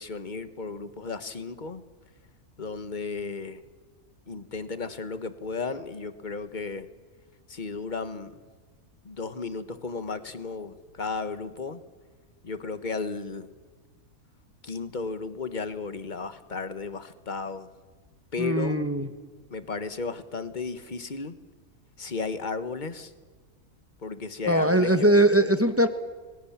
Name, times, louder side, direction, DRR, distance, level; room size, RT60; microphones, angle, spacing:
voice 1, 0.0-1.8 2.6-3.6 4.3-6.9 7.5-8.3 9.0-11.8 12.4-13.5 14.6-17.7 18.3-18.8 19.5-21.4 22.0-23.1 24.0-25.1, left 4 dB, 35° left, 12 dB, 1.5 m, -34 dB
voice 2, 18.4-19.1 24.5-25.9, right 1 dB, 10° right, 9 dB, 1.4 m, -21 dB
30.0 x 23.0 x 7.4 m, 1.5 s
omnidirectional pair, 1.5 m